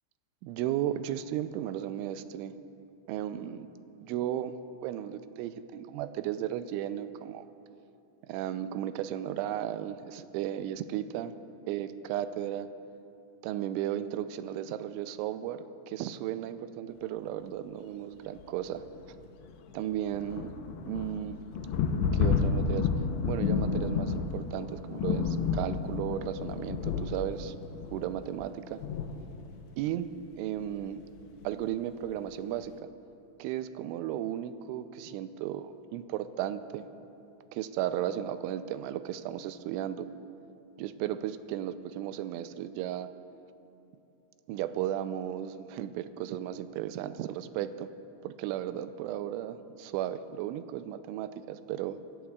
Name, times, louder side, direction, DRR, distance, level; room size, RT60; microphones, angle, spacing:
voice 1, 0.4-2.6 3.1-3.7 4.0-7.5 8.2-11.3 11.7-12.7 13.4-18.8 19.7-20.6 20.9-21.4 22.1-22.9 23.3-27.6 27.9-28.8 29.8-31.0 31.4-32.8 33.4-36.9 37.5-40.1 40.8-43.1 44.5-47.9 48.2-52.0, right 11 dB, 85° right, 11 dB, 2.8 m, -35 dB
sound 1, 18.4-18.5 18.7-29.7 30.8-30.9 31.2-31.5, left 5 dB, 80° left, 2.8 m, -31 dB
26.5 x 16.0 x 2.4 m, 2.7 s
omnidirectional pair, 5.5 m